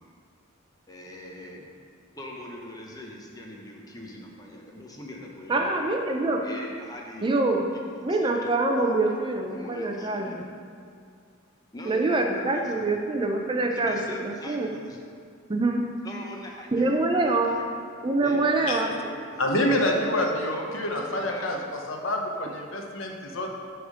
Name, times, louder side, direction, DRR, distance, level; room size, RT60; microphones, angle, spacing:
voice 1, 0.9-1.7 2.2-5.8 6.4-7.3 7.7-9.0 9.5-10.3 11.7-13.1 13.7-15.0 16.0-17.7 18.2-19.7 20.0-20.2 20.5-21.5 22.3-22.5, left 1 dB, 20° left, -1 dB, 0.8 m, -42 dB
voice 2, 5.5-6.4 7.2-7.7 8.0-10.3 11.8-14.7 15.5-15.9 16.7-17.6 18.0-19.0, right 2 dB, 25° right, 2 dB, 0.4 m, -25 dB
voice 3, 19.4-21.6 21.9-23.5, left 1 dB, 75° left, 2 dB, 0.8 m, -27 dB
7.0 x 3.6 x 6.3 m, 2.2 s
head